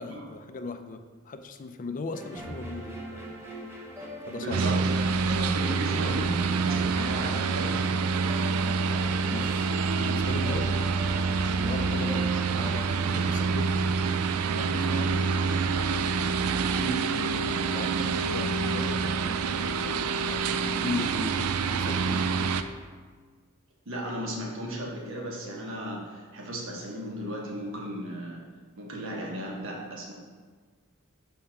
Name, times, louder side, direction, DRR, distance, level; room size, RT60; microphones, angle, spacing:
voice 1, 0.0-3.3 4.3-4.6 9.3-10.8 11.6-13.8 14.5-15.3 17.7-19.4 19.8-22.3, left 3 dB, 40° left, 8 dB, 0.4 m, -38 dB
sound 1, 2.1-13.2, right 1 dB, 10° right, 0.9 m, -41 dB
voice 2, 4.4-8.4 16.7-17.0 23.8-28.4 28.8-30.1, right 1 dB, 65° right, -2 dB, 1.3 m, -35 dB
sound 2, 4.5-22.6, right 5 dB, 90° right, 0.4 m, -27 dB
5.4 x 3.7 x 5.7 m, 1.5 s
head